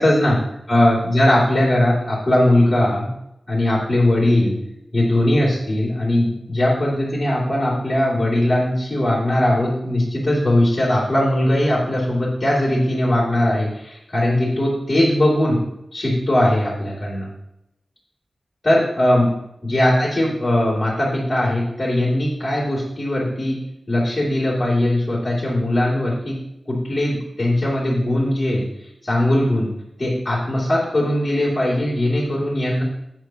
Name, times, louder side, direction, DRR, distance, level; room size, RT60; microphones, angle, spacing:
voice 1, 0.0-0.4 0.7-3.1 3.5-4.6 4.9-15.6 15.9-17.3 18.6-19.3 19.7-23.6 23.9-26.4 26.7-28.7 29.0-29.7 30.0-32.8, left 1 dB, 25° left, -9 dB, 3.0 m, -19 dB
9.4 x 9.2 x 3.0 m, 0.83 s
wide cardioid pair, 115°, 0 cm